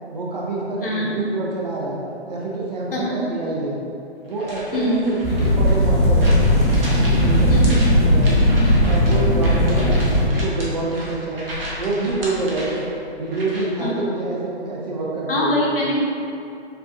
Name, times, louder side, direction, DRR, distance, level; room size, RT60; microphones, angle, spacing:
voice 1, 0.1-2.0 2.2-3.8 4.2-6.5 6.8-8.5 8.8-10.0 10.3-12.9 13.1-15.7, right 2 dB, 40° right, -4 dB, 0.6 m, -27 dB
voice 2, 0.8-1.1 2.9-3.2 4.7-5.0 7.5-7.8 13.8-13.9 15.3-16.0, left 1 dB, 55° left, -5 dB, 1.1 m, -23 dB
sound 1, 4.3-13.8, equal, 55° right, 1.0 m, -34 dB
sound 2, 5.2-10.3, equal, 25° left, 0.7 m, -17 dB
6.7 x 2.5 x 2.5 m, 2.7 s
figure-of-eight pair, 125°, 33 cm